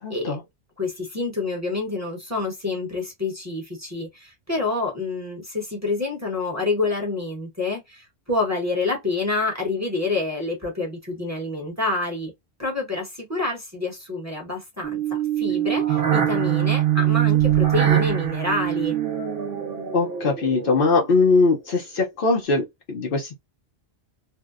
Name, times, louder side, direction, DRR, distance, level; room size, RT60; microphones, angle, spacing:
voice 1, 0.0-0.4 19.9-23.3, left 3 dB, 60° left, 0.7 m, -21 dB
voice 2, 0.8-12.3 12.6-19.0, left 3 dB, 15° right, 0.8 m, -27 dB
sound 1, 14.8-21.2, right 11 dB, 70° right, 0.8 m, -23 dB
2.6 x 2.0 x 2.3 m
omnidirectional pair, 1.1 m